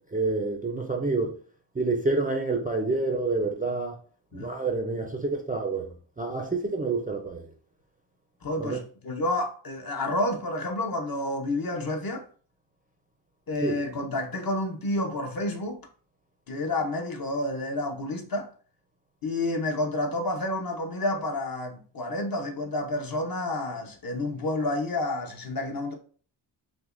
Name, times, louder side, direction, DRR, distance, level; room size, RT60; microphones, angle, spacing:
voice 1, 0.1-1.3 1.8-4.0 4.3-5.9 6.2-7.5 8.6-8.8 13.6-13.8, right 3 dB, 20° right, 0.4 m, -28 dB
voice 2, 8.4-12.3 13.5-15.8 16.5-18.5 19.2-25.9, left 1 dB, 45° left, 0.7 m, -30 dB
6.0 x 2.1 x 2.4 m
wide cardioid pair, 135°, 49 cm